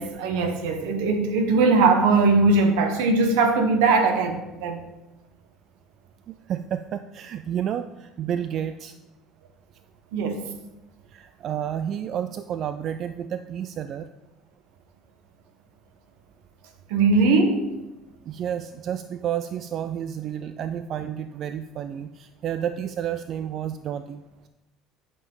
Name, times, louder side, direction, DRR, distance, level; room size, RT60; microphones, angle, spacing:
voice 1, 0.0-4.8 10.1-10.5 16.9-17.7, right 3 dB, 80° right, 7 dB, 1.1 m, -20 dB
voice 2, 6.3-9.0 11.1-14.1 18.2-24.2, right 9 dB, 50° right, 11 dB, 0.4 m, -30 dB
10.5 x 5.3 x 3.8 m, 0.99 s
supercardioid pair, 85°, 0 cm